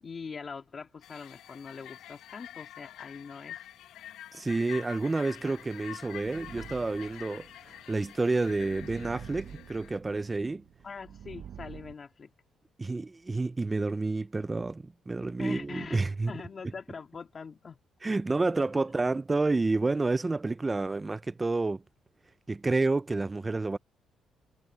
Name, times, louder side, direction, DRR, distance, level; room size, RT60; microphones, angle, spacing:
voice 1, 0.0-3.6 10.8-12.3 15.4-17.8, left 5 dB, 40° left, 2.1 m, -43 dB
sound 1, 1.0-10.0, left 12 dB, 85° left, 1.2 m, -47 dB
voice 2, 4.3-7.5 7.9-10.6 12.8-16.3 18.0-21.8 22.5-23.8, right 3 dB, 20° right, 0.6 m, -29 dB
sound 2, 6.0-11.9, right 9 dB, 65° right, 0.8 m, -48 dB
cardioid pair, 90°, 0 cm